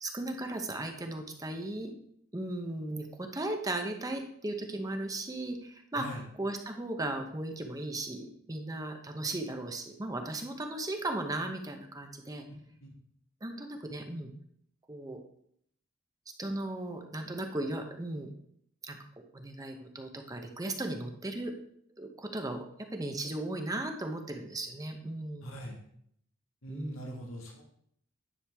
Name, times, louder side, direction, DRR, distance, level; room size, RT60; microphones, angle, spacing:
voice 1, 0.0-1.9 2.3-12.4 13.4-14.3 14.9-15.2 16.4-18.3 18.8-19.0 19.3-21.5 22.0-22.7 22.9-25.5 26.7-27.2, right 2 dB, 15° right, 4 dB, 0.8 m, -36 dB
voice 2, 25.4-25.8 26.6-27.6, equal, 80° left, 0 dB, 1.7 m, -42 dB
9.9 x 6.5 x 3.4 m, 0.67 s
head